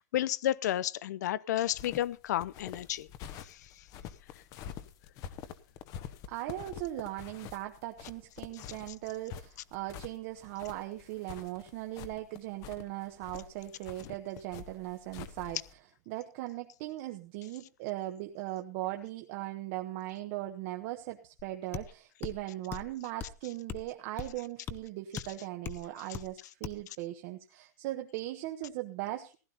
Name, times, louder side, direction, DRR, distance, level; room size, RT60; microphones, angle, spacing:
voice 1, 0.0-3.1 3.4-3.8 8.6-8.7 25.1-25.2, left 12 dB, 75° left, 0.6 m, -32 dB
sound 1, 1.7-15.7, left 9 dB, 40° left, 1.2 m, -47 dB
voice 2, 6.3-15.6 16.1-29.4, right 15 dB, 50° right, 1.2 m, -39 dB
sound 2, 21.4-21.5 21.7-21.9 22.2-22.4 22.7-22.9 23.2-23.4 23.7-23.9 24.2-24.4 24.7-24.8 25.2-25.3 25.7-25.8 26.1-26.3 26.6-26.8, left 8 dB, 20° left, 1.0 m, -39 dB
15.5 x 11.5 x 4.0 m
supercardioid pair, 145°, 9 cm